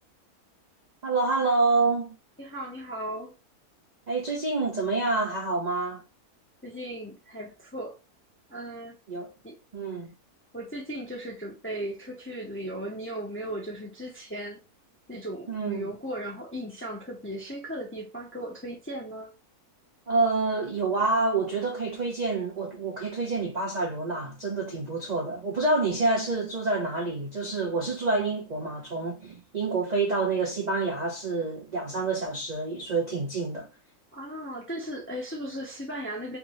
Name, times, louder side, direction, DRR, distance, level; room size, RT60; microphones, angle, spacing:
voice 1, 1.0-2.1 4.1-6.0 9.1-9.3 9.7-10.1 15.5-15.9 20.1-33.7, right 3 dB, 45° right, 0.5 m, -27 dB
voice 2, 2.4-3.3 6.6-7.9 8.5-9.0 9.4-9.6 10.5-14.6 15.1-19.3 34.1-36.4, right 1 dB, 15° left, 0.5 m, -36 dB
3.4 x 2.6 x 3.0 m
omnidirectional pair, 1.6 m